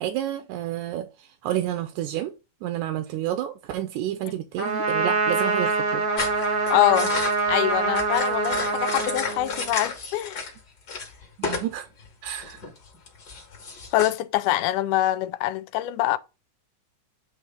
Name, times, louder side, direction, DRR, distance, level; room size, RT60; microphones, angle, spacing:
voice 1, 0.0-2.3 2.6-6.0 11.4-11.9 12.2-12.6, right 12 dB, 80° right, 2.0 m, -30 dB
Trumpet, 4.6-9.8, right 3 dB, 50° right, 1.0 m, -25 dB
sound 1, 6.2-10.6 10.9-11.7 12.0-14.1, left 4 dB, 40° left, 1.7 m, -32 dB
voice 2, 6.7-7.1 7.5-10.4 13.9-16.2, left 15 dB, 85° left, 2.1 m, -24 dB
8.8 x 3.2 x 4.3 m
omnidirectional pair, 3.6 m